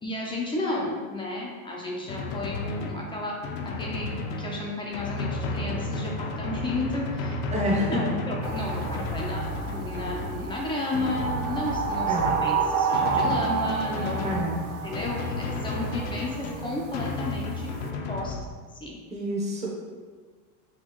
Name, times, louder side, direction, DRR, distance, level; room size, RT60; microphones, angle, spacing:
voice 1, 0.0-3.4 3.6-4.1 4.4-7.4 7.8-14.4 14.8-17.7 18.1-18.4 18.8-18.9, left 2 dB, 10° left, -2 dB, 0.5 m, -33 dB
Drum, 2.1-18.5, left 2 dB, 60° left, 0.6 m, -33 dB
voice 2, 7.5-8.1 12.1-12.4 14.2-14.7 19.1-19.7, equal, 15° right, -3 dB, 0.8 m, -28 dB
sound 1, 8.4-17.9, right 5 dB, 65° right, 0.5 m, -31 dB
6.3 x 2.3 x 3.0 m, 1.5 s
supercardioid pair, 135°, 44 cm